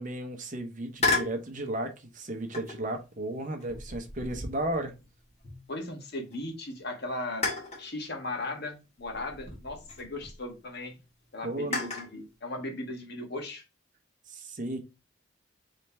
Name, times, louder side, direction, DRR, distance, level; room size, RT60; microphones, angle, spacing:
voice 1, 0.0-4.9 11.4-11.8 14.3-14.8, right 1 dB, 40° right, 0.8 m, -34 dB
sound 1, 1.0-1.4 2.5-2.9 3.6-5.9 6.3-6.4 7.4-7.9 9.0-10.4 11.7-12.1, left 3 dB, 30° left, 1.6 m, -33 dB
voice 2, 5.7-7.5 7.8-11.0 11.3-13.6, left 2 dB, 50° left, 1.3 m, -37 dB
3.8 x 3.3 x 4.2 m
head